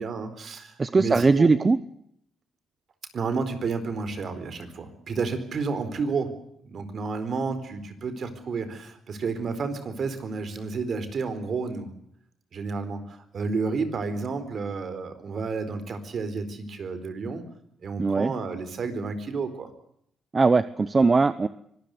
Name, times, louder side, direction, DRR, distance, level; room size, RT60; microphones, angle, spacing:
voice 1, 0.0-1.5 3.1-6.4 6.6-11.9 12.5-17.4 17.8-19.7, right 4 dB, 55° right, 11 dB, 4.3 m, -31 dB
voice 2, 0.8-1.8 18.0-18.3 20.3-21.5, right 4 dB, 30° right, 14 dB, 0.9 m, -20 dB
24.5 x 19.5 x 7.9 m, 0.70 s
cardioid pair, 110°, 0 cm